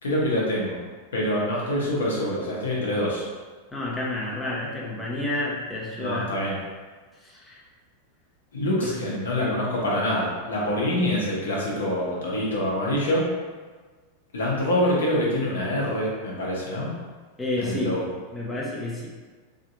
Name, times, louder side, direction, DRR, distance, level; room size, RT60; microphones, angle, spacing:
voice 1, 0.0-0.8 1.1-3.3 6.0-6.6 8.5-13.2 14.3-16.9 17.6-18.0, left 1 dB, 65° left, -4 dB, 0.8 m, -25 dB
voice 2, 3.7-6.3 7.2-7.6 8.8-8.9 17.4-17.9 18.3-19.1, left 2 dB, 10° left, -5 dB, 0.7 m, -30 dB
3.5 x 2.7 x 2.5 m, 1.4 s
figure-of-eight pair, 90°, 0 cm